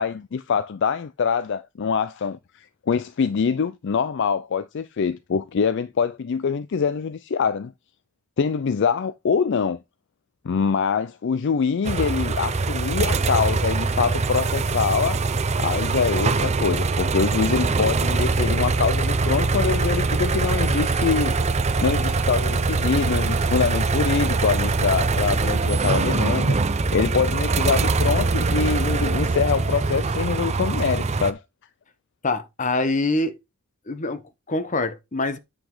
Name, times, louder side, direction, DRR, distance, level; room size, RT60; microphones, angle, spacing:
voice 1, 0.0-7.7 8.4-9.8 10.4-15.2 15.6-21.3 21.8-26.6 26.9-31.4, left 6 dB, 55° left, 0.4 m, -24 dB
sound 1, 11.8-31.3, right 3 dB, 30° right, 0.6 m, -23 dB
voice 2, 32.2-33.4 33.9-35.4, left 2 dB, 35° left, 0.9 m, -25 dB
8.8 x 5.1 x 3.8 m
head